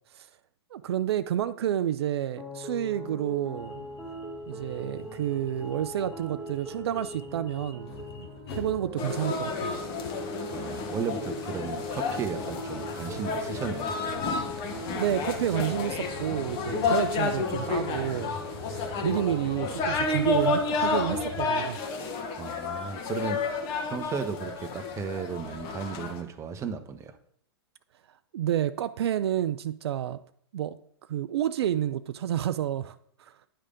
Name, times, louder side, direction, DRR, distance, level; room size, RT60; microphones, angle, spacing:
voice 1, 0.7-3.9 4.5-9.7 14.9-18.4 18.7-21.8 28.3-30.2 30.5-30.8 31.1-33.3, right 11 dB, 70° right, 0.4 m, -30 dB
sound 1, 2.4-19.5, equal, 5° right, 1.1 m, -41 dB
sound 2, 3.6-21.5, left 5 dB, 70° left, 1.2 m, -45 dB
sound 3, 9.0-26.2, left 4 dB, 40° left, 1.3 m, -31 dB
voice 2, 10.5-13.9 22.4-23.4 23.8-27.2, right 6 dB, 20° right, 0.7 m, -35 dB
9.9 x 3.3 x 5.1 m
hypercardioid pair, 120°, 14 cm